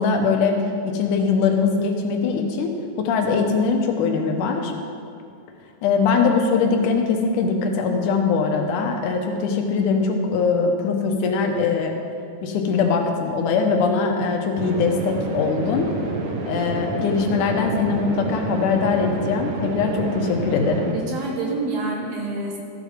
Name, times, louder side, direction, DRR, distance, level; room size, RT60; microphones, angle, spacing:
voice 1, 0.0-4.7 5.8-11.9 12.4-15.9 16.4-21.0, left 5 dB, 85° left, 3 dB, 2.4 m, -21 dB
sound 1, 14.6-20.9, right 3 dB, 85° right, 2.6 m, -29 dB
voice 2, 20.9-22.6, right 3 dB, 65° right, -2 dB, 2.4 m, -27 dB
13.5 x 5.1 x 5.1 m, 2.3 s
omnidirectional pair, 3.5 m